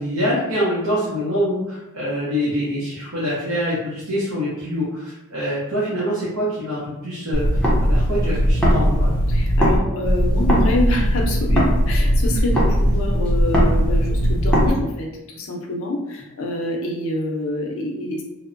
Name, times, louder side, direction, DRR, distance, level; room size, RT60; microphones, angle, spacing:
voice 1, 0.0-9.1, equal, 70° right, -8 dB, 0.7 m, -25 dB
sound 1, 7.3-9.8 10.0-14.7, equal, 5° left, 0.5 m, -18 dB
voice 2, 9.3-18.2, left 1 dB, 65° left, 0 dB, 0.5 m, -26 dB
2.8 x 2.0 x 2.5 m, 0.94 s
head